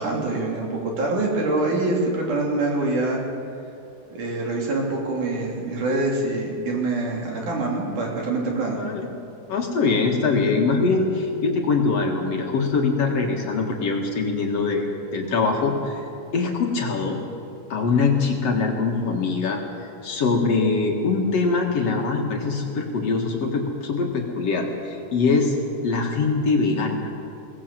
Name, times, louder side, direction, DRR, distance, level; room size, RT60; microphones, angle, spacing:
voice 1, 0.0-3.2 4.1-8.8, right 2 dB, 65° right, -1 dB, 4.5 m, -25 dB
voice 2, 8.7-9.1 9.5-14.9 15.1-16.1 16.3-17.2 17.7-25.5 25.8-27.1, left 4 dB, 55° left, 1 dB, 2.7 m, -23 dB
22.0 x 18.0 x 7.7 m, 2.6 s
omnidirectional pair, 3.9 m